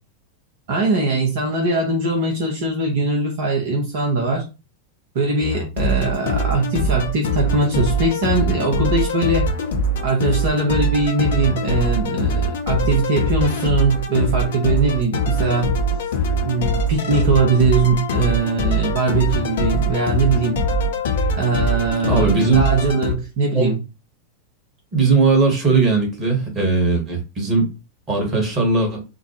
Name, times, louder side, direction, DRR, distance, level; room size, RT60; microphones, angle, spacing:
voice 1, 0.7-4.4 5.1-9.5 10.0-15.7 16.4-20.6 21.4-23.8, right 3 dB, 55° right, 0 dB, 1.0 m, -21 dB
sound 1, 5.4-23.1, equal, 60° left, 0.7 m, -22 dB
voice 2, 22.1-22.6 23.5-23.7 24.9-27.7 28.1-29.0, right 4 dB, 25° right, 1 dB, 1.5 m, -18 dB
4.3 x 2.2 x 3.0 m, 0.28 s
figure-of-eight pair, 90°, 0 cm